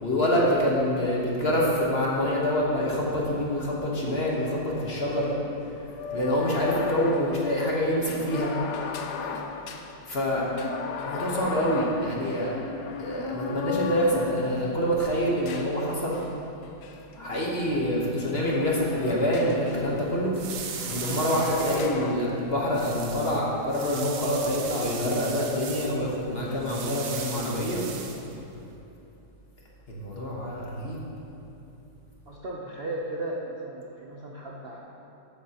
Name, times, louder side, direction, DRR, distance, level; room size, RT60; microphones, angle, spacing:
voice 1, 0.0-5.3 6.1-8.5 10.1-10.4 11.0-12.6 13.0-16.2 17.2-20.3 20.9-27.9 29.9-31.0, equal, 40° left, -4 dB, 1.2 m, -26 dB
sound 1, 3.9-4.0 5.9-14.8 15.4-16.3 16.8-20.0 20.4-22.1, left 6 dB, 75° left, 1.2 m, -36 dB
sound 2, 19.5-28.8, right 6 dB, 80° right, 1.4 m, -39 dB
voice 2, 32.3-34.8, right 1 dB, 50° right, -4 dB, 0.7 m, -35 dB
13.0 x 8.3 x 2.9 m, 2.9 s
omnidirectional pair, 1.9 m